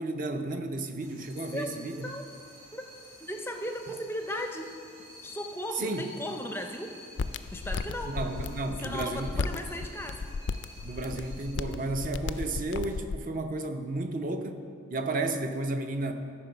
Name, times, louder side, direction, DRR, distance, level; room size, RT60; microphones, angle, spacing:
voice 1, 0.0-2.1 5.8-6.0 8.1-9.4 10.8-14.6 14.9-16.1, right 2 dB, 40° right, 7 dB, 0.6 m, -32 dB
sound 1, 1.0-11.6, left 1 dB, 75° right, 2.8 m, -51 dB
voice 2, 1.5-2.2 2.7-2.8 3.2-4.7 5.2-6.9 7.5-8.2 8.8-10.2, equal, 10° left, 4 dB, 0.5 m, -36 dB
sound 2, 7.2-13.2, left 4 dB, 65° left, 0.3 m, -35 dB
13.0 x 5.2 x 5.6 m, 2.4 s
head